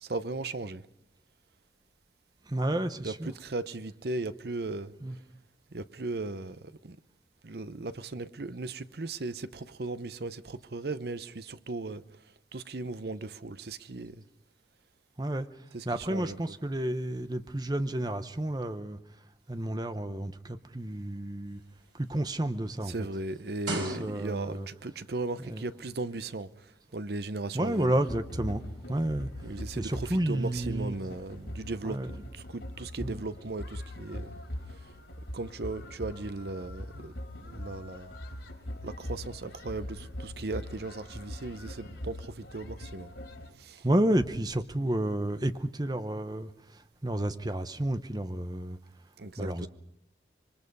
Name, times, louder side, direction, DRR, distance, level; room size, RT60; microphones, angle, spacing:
voice 1, 0.0-0.8 3.0-4.9 5.7-7.0 7.4-12.0 12.5-14.2 15.7-16.4 22.9-26.5 26.9-28.0 29.4-34.4 35.3-37.1 37.4-38.1 38.8-43.1 43.6-43.9 49.2-49.7, right 2 dB, 55° right, 0.7 m, -37 dB
voice 2, 2.5-3.3 5.0-5.2 15.2-19.0 19.5-21.6 21.9-23.1 23.7-24.7 25.4-25.6 27.5-28.6 28.9-29.3 29.7-31.0 31.8-32.2 33.0-33.3 43.8-48.8 49.4-49.7, right 1 dB, 20° right, 0.8 m, -31 dB
sound 1, 21.5-24.6 25.5-25.6, right 2 dB, 85° right, 5.9 m, -40 dB
sound 2, 28.1-43.5, left 1 dB, 80° left, 3.7 m, -42 dB
26.5 x 23.0 x 5.4 m
head